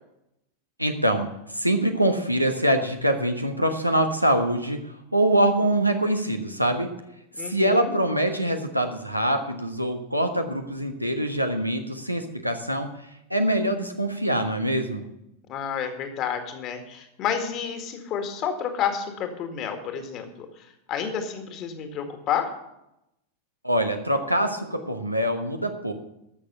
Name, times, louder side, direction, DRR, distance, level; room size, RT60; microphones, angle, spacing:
voice 1, 0.8-6.9 7.4-12.9 13.3-15.0 23.6-25.9, right 1 dB, 90° right, 5 dB, 1.2 m, -24 dB
voice 2, 7.4-7.9 15.5-22.5, left 8 dB, 35° left, 6 dB, 1.9 m, -30 dB
13.0 x 6.6 x 6.9 m, 0.84 s
figure-of-eight pair, 90°, 0 cm